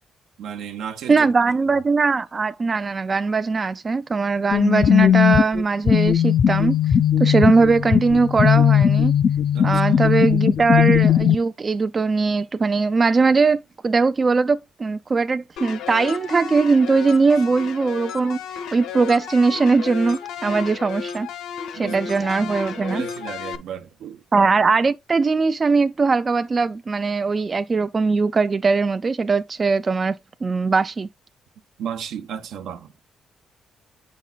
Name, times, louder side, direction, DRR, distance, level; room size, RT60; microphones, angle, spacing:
voice 1, 0.4-1.3 9.5-9.8 20.5-20.6 21.8-24.2 31.8-32.9, right 8 dB, 80° right, 0.8 m, -34 dB
voice 2, 1.1-6.8 7.2-9.1 9.6-18.4 18.7-21.3 21.7-23.0 24.3-31.1, right 4 dB, 35° right, 0.3 m, -20 dB
sound 1, 4.5-11.3, left 9 dB, 50° left, 0.4 m, -18 dB
sound 2, 15.6-23.6, left 8 dB, 85° left, 0.8 m, -33 dB
8.2 x 5.2 x 2.2 m
cardioid pair, 90°, 0 cm